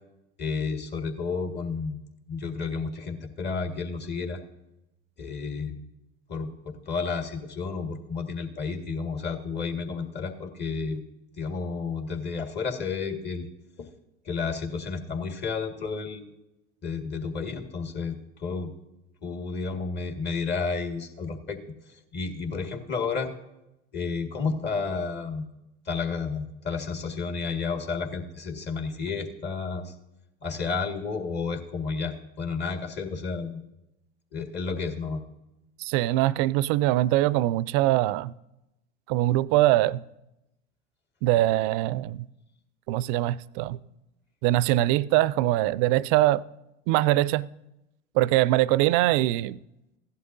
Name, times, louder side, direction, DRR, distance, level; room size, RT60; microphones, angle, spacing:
voice 1, 0.4-2.0 2.3-4.4 5.2-5.8 6.3-11.0 11.4-13.5 13.8-13.9 14.2-16.2 16.8-18.7 19.2-21.6 21.9-23.3 23.9-25.5 25.9-29.9 30.4-33.6 34.3-35.2, left 4 dB, 35° left, 1.8 m, -31 dB
voice 2, 35.8-38.3 39.1-40.0 41.2-42.3 42.9-43.8 44.4-46.4 46.9-47.5 48.2-49.6, right 16 dB, 55° right, 0.4 m, -23 dB
16.0 x 11.0 x 2.7 m
hypercardioid pair, 80°, 31 cm